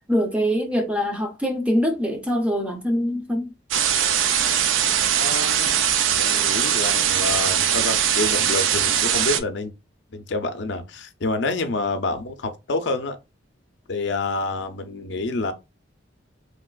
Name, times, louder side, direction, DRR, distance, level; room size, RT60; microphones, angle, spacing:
voice 1, 0.1-3.5, equal, 5° right, 0.5 m, -23 dB
sound 1, 3.7-9.4, right 9 dB, 80° right, 0.5 m, -21 dB
voice 2, 5.2-5.7 6.1-9.7 10.1-13.2 13.9-15.5, left 2 dB, 65° left, 0.5 m, -28 dB
3.1 x 2.9 x 2.3 m
head